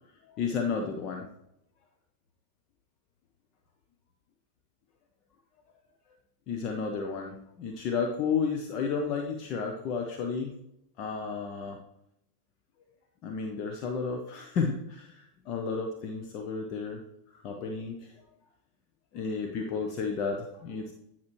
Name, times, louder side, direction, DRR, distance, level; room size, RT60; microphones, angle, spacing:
voice 1, 0.2-1.3 6.5-10.5 11.0-11.8 13.2-17.0 17.4-18.1 19.1-20.9, left 5 dB, 40° left, 2 dB, 0.9 m, -32 dB
9.5 x 5.8 x 3.1 m, 0.79 s
figure-of-eight pair, 90°, 0 cm